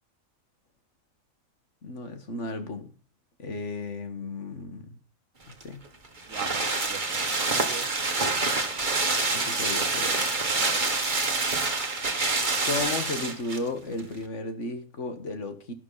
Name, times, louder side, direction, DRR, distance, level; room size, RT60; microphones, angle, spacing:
voice 1, 1.8-2.9 3.4-5.0 5.5-5.8 9.3-10.3 12.6-15.7, left 2 dB, 60° left, 8 dB, 2.0 m, -34 dB
sound 1, 5.5-13.7 14.0-14.1, right 3 dB, 35° right, 1.8 m, -27 dB
voice 2, 6.3-7.9 10.4-11.0, right 8 dB, 70° right, 14 dB, 1.2 m, -41 dB
12.5 x 11.0 x 4.0 m, 0.38 s
omnidirectional pair, 1.4 m